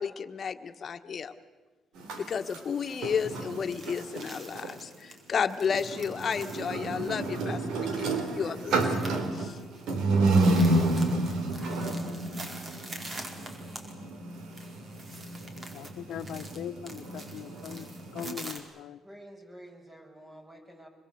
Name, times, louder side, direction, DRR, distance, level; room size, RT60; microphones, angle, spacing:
voice 1, 0.0-1.3 2.2-8.9 9.3-9.6, left 6 dB, 50° left, 7 dB, 1.6 m, -32 dB
sound 1, 2.0-4.7 5.6-18.3, right 2 dB, 85° right, 3.3 m, -30 dB
sound 2, 3.2-18.6, right 2 dB, 40° right, 4.7 m, -46 dB
voice 2, 15.7-17.9 18.1-19.0, left 10 dB, 80° left, 10 dB, 1.2 m, -40 dB
voice 3, 19.0-20.9, right 1 dB, 20° right, 3 dB, 6.5 m, -49 dB
26.0 x 22.0 x 8.1 m, 1.3 s
cardioid pair, 90°, 0 cm